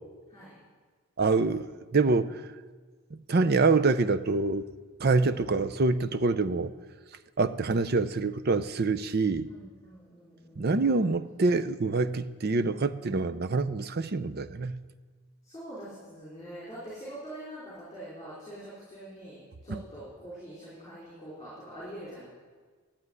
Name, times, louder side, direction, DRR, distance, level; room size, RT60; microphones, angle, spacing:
voice 1, 1.2-1.7 1.9-2.4 3.3-4.7 5.0-6.7 7.4-9.5 10.6-14.8 19.7-19.8, right 3 dB, 45° right, 11 dB, 0.5 m, -26 dB
voice 2, 9.5-10.7 11.0-11.2 15.4-22.3, right 1 dB, 15° left, -8 dB, 4.5 m, -44 dB
12.0 x 8.8 x 9.5 m, 1.5 s
head